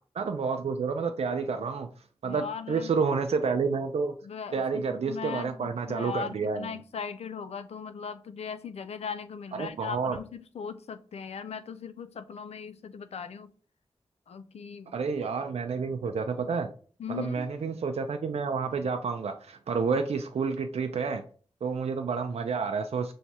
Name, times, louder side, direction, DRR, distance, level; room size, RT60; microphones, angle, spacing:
voice 1, 0.2-1.9 2.2-4.1 4.5-6.7 9.5-10.2 14.9-16.7 17.1-21.2 21.6-23.1, right 5 dB, 85° right, 0.4 m, -29 dB
voice 2, 2.2-2.9 4.2-13.5 14.3-14.9 17.0-17.5, left 6 dB, 90° left, 0.4 m, -39 dB
5.8 x 3.1 x 2.8 m
wide cardioid pair, 90°, 10 cm